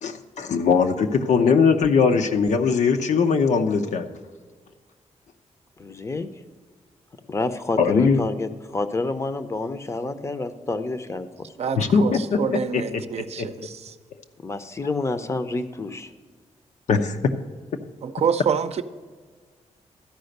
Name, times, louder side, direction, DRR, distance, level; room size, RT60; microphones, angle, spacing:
voice 1, 0.0-4.1 7.8-8.2 11.8-12.4 12.7-13.5 16.9-17.3, left 5 dB, 75° left, 5 dB, 0.8 m, -20 dB
voice 2, 5.8-6.3 7.3-11.5 14.4-16.1, left 3 dB, 25° left, 10 dB, 0.6 m, -28 dB
voice 3, 11.6-13.8 18.0-18.8, right 7 dB, 60° right, 10 dB, 0.6 m, -26 dB
13.0 x 5.1 x 6.6 m, 1.5 s
wide cardioid pair, 140°, 12 cm